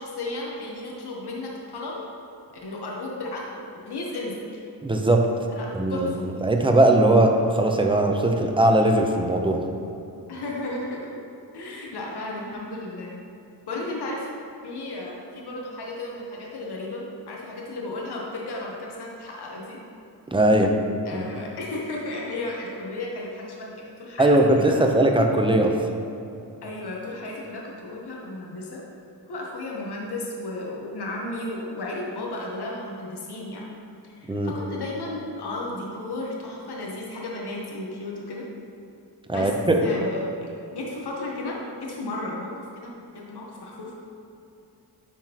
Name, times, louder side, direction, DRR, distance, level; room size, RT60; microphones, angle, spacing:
voice 1, 0.0-2.0 2.6-4.6 5.5-6.3 10.3-11.2 11.5-13.2 13.7-14.3 14.6-19.8 21.0-24.9 26.6-28.8 29.3-33.8 34.0-38.5 39.3-39.5 39.8-44.0, left 2 dB, 70° left, -2 dB, 1.0 m, -34 dB
voice 2, 4.8-5.3 5.7-6.1 6.4-9.6 20.3-20.8 21.1-21.3 24.2-25.8 34.3-34.5 39.3-39.8, right 1 dB, 15° right, 3 dB, 0.6 m, -19 dB
10.5 x 3.8 x 2.9 m, 2.7 s
wide cardioid pair, 85°, 41 cm